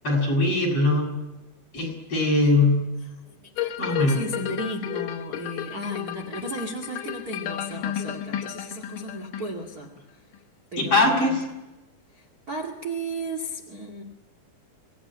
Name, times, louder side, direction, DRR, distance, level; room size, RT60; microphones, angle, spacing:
voice 1, 0.0-1.1 1.7-2.8 3.8-4.2 10.8-11.4, left 2 dB, 40° left, 1 dB, 7.3 m, -21 dB
voice 2, 3.3-9.9 10.7-11.4 12.1-14.0, right 1 dB, 30° right, 3 dB, 2.2 m, -34 dB
sound 1, 3.6-9.8 10.3-10.4, left 11 dB, 65° left, 2.6 m, -33 dB
25.0 x 19.0 x 9.9 m, 1.0 s
omnidirectional pair, 4.3 m